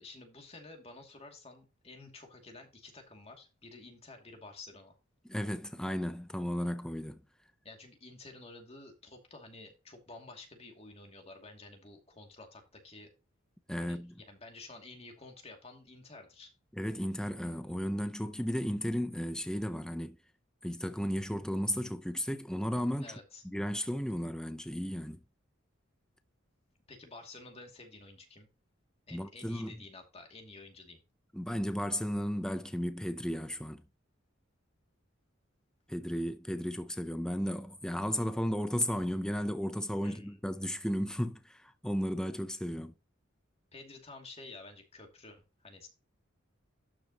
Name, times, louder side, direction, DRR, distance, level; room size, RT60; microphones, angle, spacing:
voice 1, 0.0-4.9 7.6-13.1 13.8-16.5 23.0-23.4 26.9-28.5 29.1-31.0 40.0-40.5 43.7-45.9, left 3 dB, 30° left, 2.5 m, -51 dB
voice 2, 5.3-7.2 13.7-14.1 16.7-20.2 20.6-23.2 23.4-25.2 29.1-29.7 31.3-33.8 35.9-42.9, equal, 5° left, 0.6 m, -34 dB
12.0 x 6.2 x 2.9 m
head